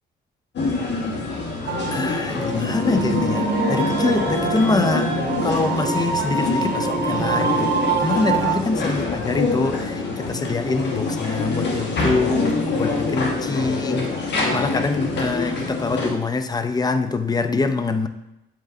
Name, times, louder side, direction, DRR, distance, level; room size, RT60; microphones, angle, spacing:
sound 1, 0.6-16.1, left 3 dB, 60° left, 1.3 m, -25 dB
sound 2, 1.7-8.5, right 6 dB, 55° right, 0.7 m, -26 dB
voice 1, 1.9-5.1 5.4-7.7 8.0-14.1 14.5-18.1, left 3 dB, 20° left, 10 dB, 0.4 m, -24 dB
7.2 x 5.3 x 2.6 m, 0.90 s
cardioid pair, 90°, 20 cm